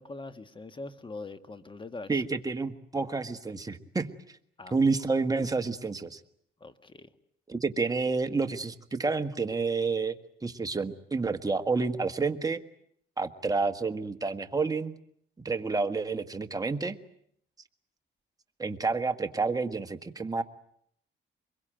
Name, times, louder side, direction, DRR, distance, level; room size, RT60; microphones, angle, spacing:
voice 1, 0.0-2.3 4.6-4.8 6.6-7.1, left 3 dB, 25° left, 11 dB, 1.7 m, -42 dB
voice 2, 2.1-4.1 4.7-6.2 7.5-10.1 10.4-12.6 13.2-14.9 15.4-17.0 18.6-20.4, right 4 dB, 20° right, 7 dB, 1.6 m, -29 dB
24.5 x 22.5 x 9.1 m, 0.68 s
cardioid pair, 90°, 20 cm